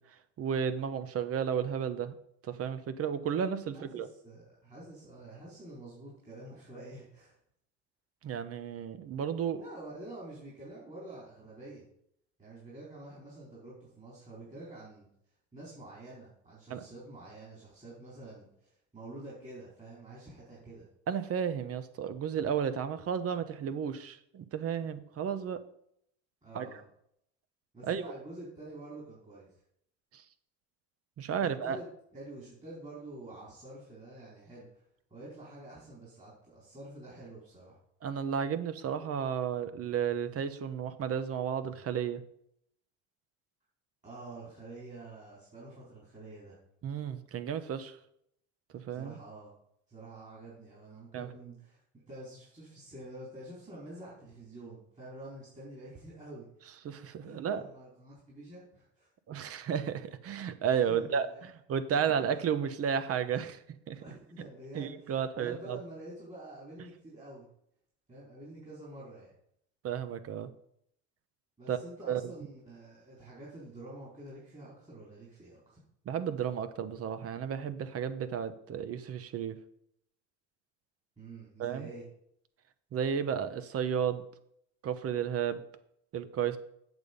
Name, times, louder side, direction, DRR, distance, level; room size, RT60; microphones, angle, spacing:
voice 1, 0.4-2.1 2.4-4.1 8.2-9.6 16.7-16.9 21.1-25.6 26.5-26.7 27.9-28.1 30.1-30.2 31.2-31.8 38.0-42.2 46.8-48.0 48.7-49.1 51.1-51.3 56.8-57.6 59.3-64.0 64.7-65.8 69.8-70.5 71.7-71.8 72.1-72.2 76.1-79.6 81.6-81.9 82.9-84.2 84.8-85.6 86.1-86.6, right 8 dB, 50° right, 12 dB, 1.0 m, -33 dB
voice 2, 3.7-7.3 9.5-11.9 12.4-15.1 15.5-20.9 26.4-26.8 27.7-29.5 31.4-31.9 32.1-34.8 35.1-37.8 44.0-46.6 48.9-49.5 49.9-51.8 52.1-56.5 57.2-59.1 60.9-61.5 61.9-62.2 64.0-67.5 68.1-69.3 71.6-75.6 81.2-82.0, right 2 dB, 25° right, -6 dB, 4.3 m, -48 dB
8.1 x 7.2 x 5.3 m, 0.71 s
supercardioid pair, 100°, 31 cm